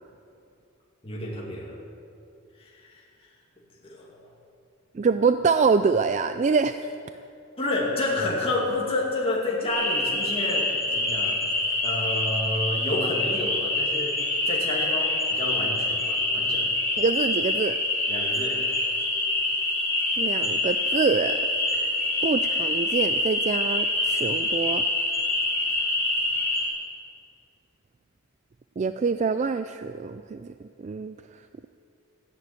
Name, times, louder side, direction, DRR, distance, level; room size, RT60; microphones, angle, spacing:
voice 1, 1.0-1.8 2.6-2.9 3.8-4.1 7.6-11.4 11.8-14.2 14.5-16.7 18.1-18.6, left 2 dB, 25° left, -4 dB, 2.5 m, -29 dB
voice 2, 4.9-6.8 17.0-17.8 20.2-21.4 22.2-24.8 28.8-30.5 30.8-31.4, right 5 dB, 35° right, 10 dB, 0.3 m, -25 dB
sound 1, 9.7-26.7, left 2 dB, 10° left, 4.3 m, -26 dB
13.5 x 10.5 x 8.4 m, 2.6 s
head